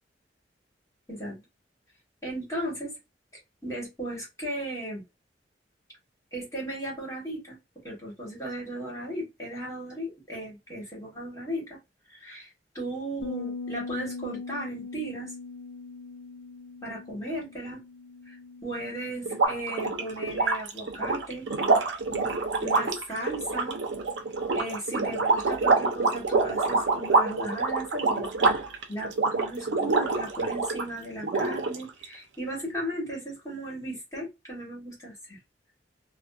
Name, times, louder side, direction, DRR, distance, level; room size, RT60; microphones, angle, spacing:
voice 1, 1.1-1.4 2.2-2.9 3.6-5.0 6.3-7.6 7.8-11.8 12.1-12.5 12.7-15.3 16.8-17.8 18.3-18.4 18.6-21.5 22.1-23.8 24.5-28.6 28.9-35.4, right 1 dB, 20° left, 1.3 m, -36 dB
Bass guitar, 13.2-19.5, left 4 dB, 80° left, 0.5 m, -40 dB
sound 1, 19.3-30.9 31.2-32.0, right 3 dB, 85° right, 0.6 m, -26 dB
2.5 x 2.1 x 2.3 m
head